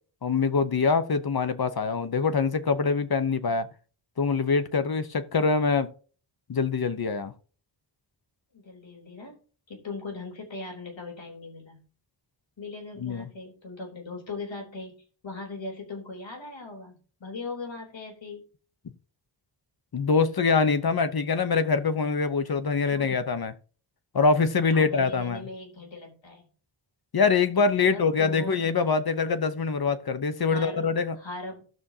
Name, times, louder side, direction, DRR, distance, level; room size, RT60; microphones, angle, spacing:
voice 1, 0.2-3.7 4.2-5.9 6.5-7.3 13.0-13.3 19.9-23.5 24.1-25.5 27.1-31.2, left 4 dB, 50° left, 1.1 m, -24 dB
voice 2, 8.5-9.4 9.7-11.8 12.6-15.0 15.2-18.4 22.9-23.2 24.7-26.5 27.6-28.7 30.5-31.7, left 3 dB, 75° left, 3.8 m, -39 dB
17.0 x 6.3 x 2.9 m
wide cardioid pair, 95°, 46 cm